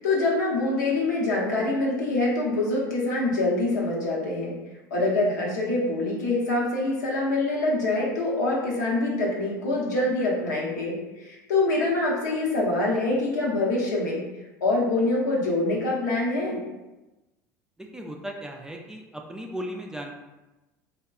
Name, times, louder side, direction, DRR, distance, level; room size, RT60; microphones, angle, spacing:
voice 1, 0.0-4.5 4.9-14.2 14.6-16.6, left 2 dB, 85° left, -3 dB, 0.7 m, -25 dB
voice 2, 17.8-20.1, equal, 5° right, 1 dB, 0.3 m, -36 dB
2.7 x 2.2 x 2.3 m, 1.1 s
hypercardioid pair, 80°, 9 cm